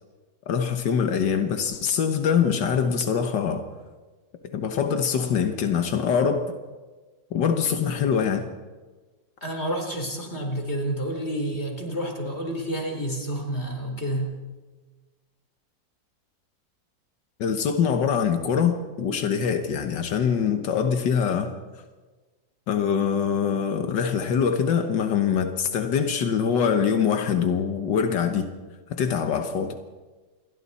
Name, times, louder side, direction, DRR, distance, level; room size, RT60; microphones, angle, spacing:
voice 1, 0.5-3.7 4.4-6.5 7.3-8.5 17.4-21.5 22.7-28.5 28.9-29.8, left 7 dB, 90° left, 1.9 m, -24 dB
voice 2, 9.4-14.3, right 1 dB, 35° left, 4.2 m, -29 dB
28.0 x 22.0 x 4.2 m
omnidirectional pair, 1.9 m